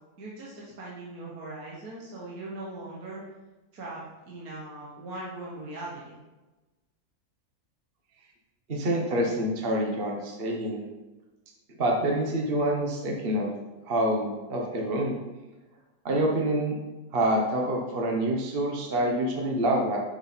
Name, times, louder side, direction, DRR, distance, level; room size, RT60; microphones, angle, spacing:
voice 1, 0.2-3.2 3.7-6.2, right 2 dB, 65° right, -5 dB, 1.8 m, -40 dB
voice 2, 8.7-10.8 11.8-13.5 13.9-15.1 16.0-16.8 17.1-20.0, right 1 dB, 40° right, 0 dB, 1.3 m, -26 dB
9.5 x 6.2 x 4.4 m, 1.1 s
omnidirectional pair, 1.7 m